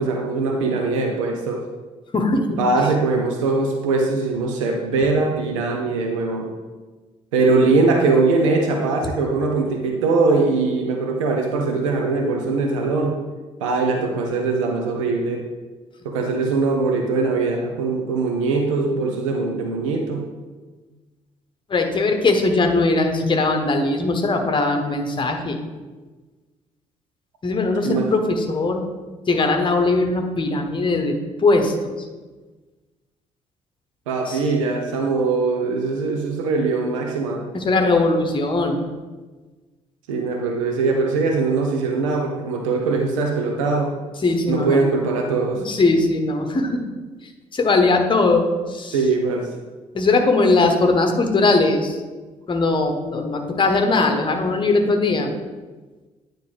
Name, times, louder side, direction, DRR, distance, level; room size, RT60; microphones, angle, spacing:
voice 1, 0.0-1.6 2.6-6.5 7.3-13.2 13.6-15.4 16.0-20.2 27.8-28.1 34.1-37.5 40.1-43.9 44.5-45.6 48.9-49.5, right 3 dB, 75° right, 3 dB, 0.6 m, -21 dB
voice 2, 2.1-2.6 21.7-25.6 27.4-28.8 29.3-32.0 34.3-34.4 37.5-38.9 44.2-44.8 45.6-46.8 47.5-49.0 49.9-52.0 52.5-55.3, left 3 dB, 30° left, 4 dB, 0.9 m, -20 dB
9.2 x 3.8 x 3.4 m, 1.3 s
figure-of-eight pair, 45°, 17 cm